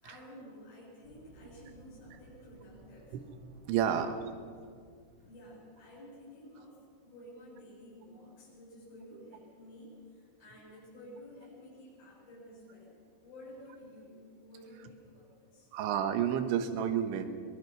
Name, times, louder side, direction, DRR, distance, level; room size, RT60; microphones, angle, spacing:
voice 1, 0.0-3.2 3.8-4.0 4.4-4.5 5.1-15.7, left 1 dB, 75° left, -7 dB, 8.9 m, -52 dB
sound 1, 1.0-5.9, right 1 dB, 30° right, 4.0 m, -58 dB
voice 2, 3.7-4.2 15.7-17.3, right 9 dB, 75° right, 8 dB, 3.5 m, -30 dB
22.5 x 19.5 x 6.1 m, 2.1 s
omnidirectional pair, 5.6 m